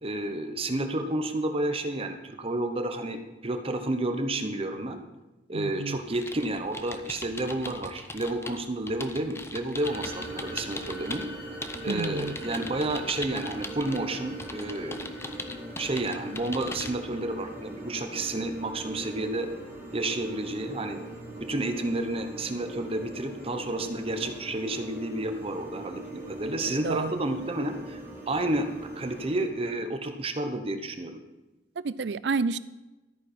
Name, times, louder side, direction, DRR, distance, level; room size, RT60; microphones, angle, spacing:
voice 1, 0.0-5.0 5.5-11.3 11.8-15.1 15.8-19.5 19.9-21.0 21.4-28.0 28.3-28.7 29.0-31.2, right 2 dB, 35° right, 7 dB, 0.9 m, -31 dB
voice 2, 5.5-6.0 11.9-12.4 26.8-27.1 31.8-32.6, right 4 dB, 75° right, 17 dB, 0.5 m, -30 dB
sound 1, 6.1-11.3 11.6-14.0 14.4-16.9, left 2 dB, 15° left, 0.7 m, -40 dB
sound 2, 9.8-29.5, right 1 dB, 20° right, 3.6 m, -41 dB
13.0 x 9.3 x 4.3 m, 1.1 s
head